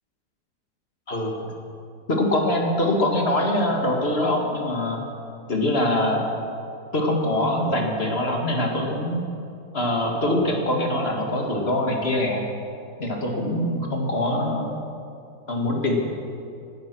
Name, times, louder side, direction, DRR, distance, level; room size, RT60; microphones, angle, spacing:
voice 1, 2.1-5.0 5.5-6.2 6.9-9.2 9.7-12.5 13.0-14.7 15.5-15.9, left 1 dB, 35° left, 0 dB, 2.2 m, -23 dB
16.0 x 12.5 x 6.2 m, 2.6 s
omnidirectional pair, 1.8 m